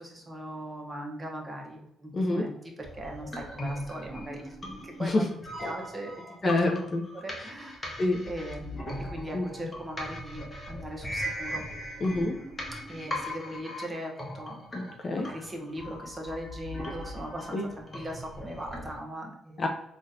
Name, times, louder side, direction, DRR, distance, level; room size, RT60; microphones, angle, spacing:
voice 1, 0.0-2.5 2.8-4.6 4.8-7.9 8.2-11.7 12.9-14.6 15.1-19.6, right 1 dB, 20° right, 0 dB, 0.9 m, -39 dB
voice 2, 2.1-2.4 5.0-5.3 6.4-7.0 8.0-8.2 9.3-9.5 12.0-12.3 14.7-15.3 17.5-17.6 19.6-19.7, left 2 dB, 40° left, 3 dB, 0.5 m, -27 dB
sound 1, 2.8-19.0, equal, 25° left, 0.9 m, -39 dB
3.9 x 2.5 x 2.6 m, 0.78 s
cardioid pair, 90°, 0 cm